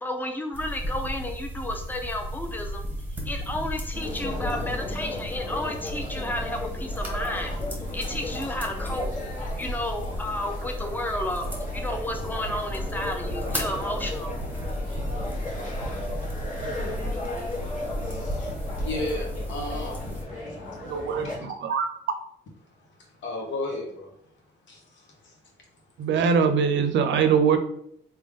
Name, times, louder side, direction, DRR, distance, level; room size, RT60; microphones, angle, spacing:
voice 1, 0.0-2.8 3.3-7.5 7.9-9.1 9.6-11.4 11.7-14.4, left 1 dB, 10° left, 4 dB, 0.6 m, -32 dB
sound 1, 0.5-20.2, equal, 10° right, 1.1 m, -34 dB
sound 2, 3.9-21.4, left 2 dB, 40° left, 1.2 m, -36 dB
voice 2, 18.0-18.5 18.8-19.9 20.4-20.5 21.2-21.5 23.2-24.1 24.7-25.3, left 2 dB, 65° left, 0 dB, 1.2 m, -34 dB
voice 3, 20.8-21.9 26.0-27.6, right 6 dB, 65° right, 7 dB, 0.5 m, -22 dB
3.5 x 2.2 x 3.6 m, 0.70 s
cardioid pair, 90°, 20 cm